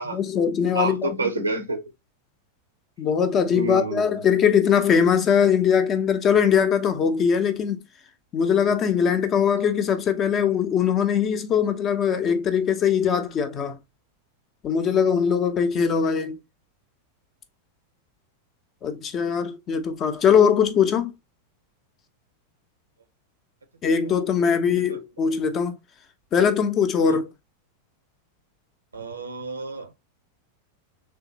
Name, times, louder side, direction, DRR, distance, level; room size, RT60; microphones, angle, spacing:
voice 1, 0.1-1.6 3.0-7.8 8.3-13.8 14.6-16.4 18.8-21.1 23.8-25.7 26.3-27.3, left 7 dB, 30° left, 0.6 m, -21 dB
voice 2, 0.7-1.8 3.5-4.2 24.4-25.0 27.0-27.2 28.9-30.0, right 3 dB, 80° right, 0.6 m, -30 dB
3.5 x 3.2 x 2.8 m
figure-of-eight pair, 90°, 0 cm